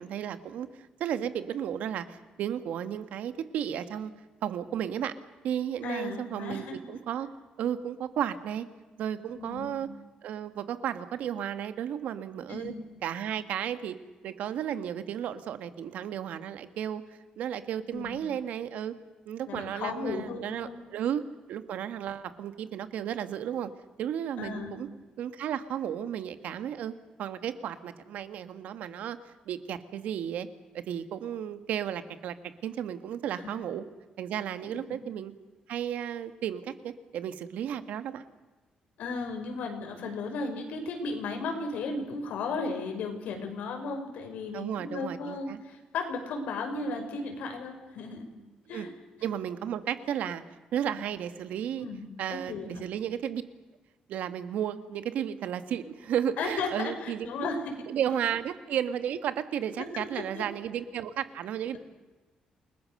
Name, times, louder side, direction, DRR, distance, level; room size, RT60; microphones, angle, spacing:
voice 1, 0.0-4.1 4.4-5.1 5.4-7.3 7.6-8.6 9.0-9.9 10.2-12.7 13.0-14.0 14.2-17.0 17.4-18.9 19.2-21.2 21.5-23.7 24.0-24.9 25.2-26.9 27.2-29.2 29.5-30.5 30.7-32.3 32.6-33.8 34.2-35.3 35.7-38.3 44.5-45.6 48.7-48.9 49.2-50.4 50.7-51.9 52.2-53.4 54.1-57.5 57.9-61.8, right 9 dB, 80° right, 10 dB, 1.7 m, -33 dB
voice 2, 5.8-7.0 9.3-9.8 12.5-12.8 17.9-18.2 19.5-20.8 24.4-24.7 33.3-33.6 34.9-35.0 39.0-48.3 48.7-48.9 51.8-52.0 52.3-52.8 56.4-57.7 59.8-60.4 61.7-61.8, left 3 dB, 85° left, 3 dB, 5.8 m, -35 dB
28.5 x 21.0 x 6.7 m, 1.2 s
cardioid pair, 140°, 3 cm